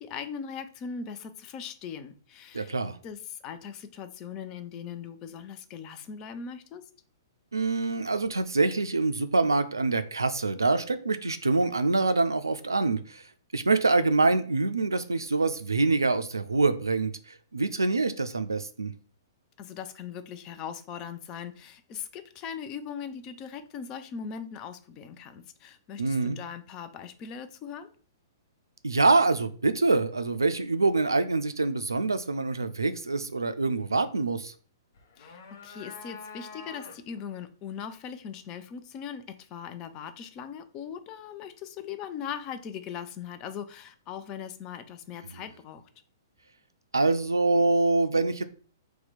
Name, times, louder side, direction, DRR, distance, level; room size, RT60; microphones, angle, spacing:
voice 1, 0.0-2.7 3.0-6.9 19.6-27.9 35.2-45.8, left 7 dB, 30° left, 10 dB, 0.4 m, -40 dB
voice 2, 2.5-3.0 7.5-13.3 13.5-18.9 26.0-26.4 28.8-34.5 45.3-45.4 46.9-48.4, right 3 dB, 80° right, 10 dB, 0.3 m, -25 dB
sound 1, 34.9-37.3, left 4 dB, 55° left, 0.8 m, -46 dB
2.8 x 2.2 x 4.1 m, 0.41 s
figure-of-eight pair, 115°, 2 cm